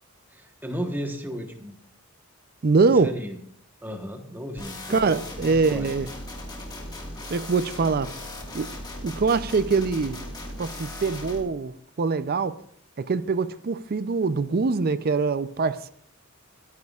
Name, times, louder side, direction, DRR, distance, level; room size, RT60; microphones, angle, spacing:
voice 1, 0.3-1.8 2.9-3.4 3.8-5.0 5.4-5.9, equal, 10° right, 1.1 m, -34 dB
voice 2, 2.6-3.2 4.9-6.1 7.3-8.1 8.5-8.7 9.0-10.2 10.6-12.6 13.0-15.9, right 4 dB, 45° right, 0.5 m, -23 dB
sound 1, 4.6-11.4, left 1 dB, 20° left, 1.7 m, -37 dB
21.0 x 9.3 x 2.4 m
head